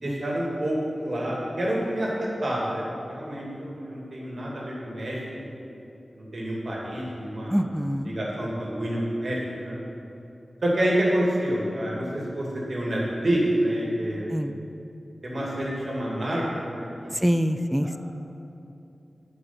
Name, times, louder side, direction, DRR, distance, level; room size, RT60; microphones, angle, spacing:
voice 1, 0.0-5.6 6.1-7.6 8.1-9.8 10.6-14.3 15.2-16.4 16.7-17.1 17.8-17.9, right 1 dB, 55° right, -4 dB, 2.4 m, -28 dB
voice 2, 7.5-8.1 14.3-14.6 17.1-18.0, equal, 5° right, 9 dB, 0.3 m, -25 dB
11.0 x 5.4 x 6.0 m, 2.8 s
wide cardioid pair, 90°, 0 cm